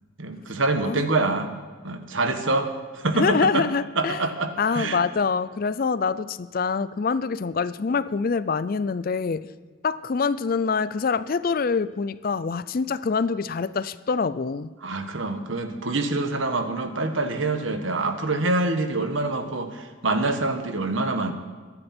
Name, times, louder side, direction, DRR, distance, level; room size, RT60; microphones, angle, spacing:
voice 1, 0.2-1.5 1.8-3.6 4.0-5.0 14.8-21.3, right 2 dB, 70° right, 7 dB, 1.3 m, -26 dB
voice 2, 3.1-4.3 4.6-9.5 9.8-14.7, left 5 dB, 45° left, 16 dB, 0.4 m, -25 dB
23.0 x 9.9 x 4.4 m, 1.5 s
head